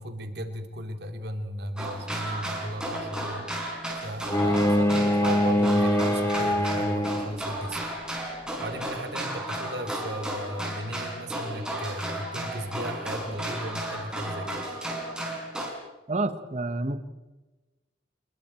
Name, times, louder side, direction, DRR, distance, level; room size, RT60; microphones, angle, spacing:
voice 1, 0.0-3.5 4.0-7.8 8.6-14.7, equal, 60° right, 6 dB, 2.7 m, -35 dB
sound 1, 1.8-15.7, right 1 dB, 5° right, 5.2 m, -34 dB
Bowed string instrument, 4.3-7.5, left 1 dB, 15° left, 1.1 m, -24 dB
voice 2, 16.1-17.0, right 2 dB, 40° right, 11 dB, 1.4 m, -28 dB
28.5 x 21.5 x 4.5 m, 1.2 s
head